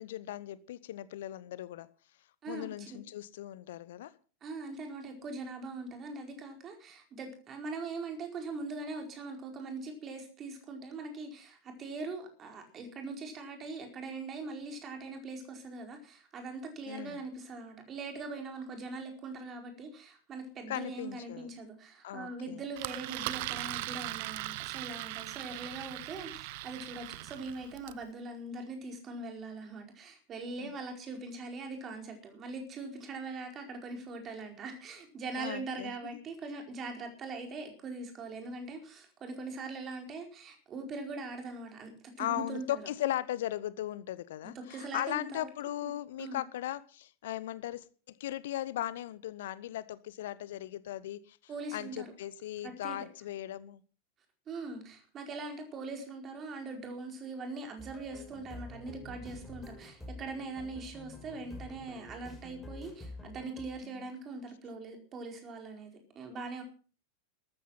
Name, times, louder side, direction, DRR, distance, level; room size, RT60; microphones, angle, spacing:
voice 1, 0.0-1.9 2.5-4.1 16.9-17.2 20.7-21.5 22.0-22.6 30.6-30.7 35.4-35.9 42.2-47.8 48.2-51.4 51.7-53.8 63.8-64.0, left 13 dB, 55° left, 0.8 m, -38 dB
voice 2, 2.4-3.0 4.4-42.8 44.4-45.5 45.8-45.9 46.2-46.4 51.5-52.1 52.6-53.1 54.5-66.6, right 3 dB, 25° right, 4.7 m, -42 dB
Engine, 22.8-28.0, right 19 dB, 50° right, 0.7 m, -39 dB
sound 1, 57.8-63.7, left 2 dB, ahead, 5.8 m, -48 dB
14.0 x 13.5 x 5.8 m
figure-of-eight pair, 90°, 0 cm